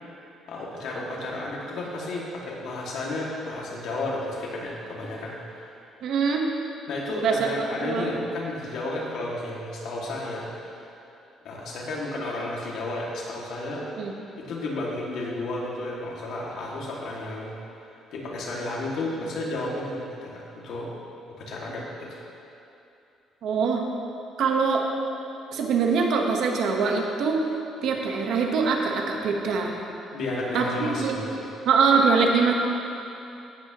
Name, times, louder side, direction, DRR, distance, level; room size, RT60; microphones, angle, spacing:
voice 1, 0.5-5.8 6.9-10.9 11.4-13.9 14.4-17.5 18.1-20.9 21.4-22.2 30.1-31.5, left 2 dB, 70° left, -4 dB, 2.3 m, -32 dB
voice 2, 6.0-6.5 7.2-8.1 14.0-14.1 23.4-23.8 24.4-24.9 25.5-27.4 27.8-29.7 30.5-31.2 31.6-32.5, right 5 dB, 70° right, 1 dB, 1.3 m, -23 dB
16.0 x 8.7 x 3.1 m, 2.7 s
cardioid pair, 120°, 0 cm